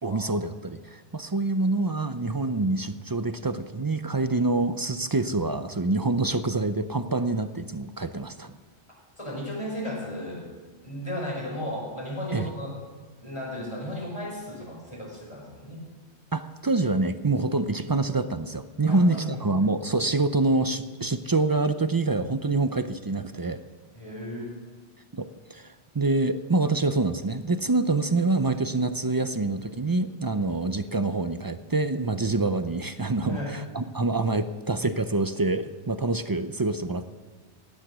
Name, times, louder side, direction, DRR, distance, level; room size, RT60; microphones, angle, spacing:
voice 1, 0.0-8.5 12.3-12.5 16.3-23.6 25.1-37.0, right 3 dB, 35° right, 11 dB, 0.3 m, -26 dB
voice 2, 9.2-10.5 10.8-12.8 13.2-15.8 18.9-19.4 23.9-24.5 33.2-33.6, equal, 25° left, -3 dB, 5.0 m, -35 dB
16.5 x 11.0 x 6.1 m, 1.4 s
omnidirectional pair, 1.2 m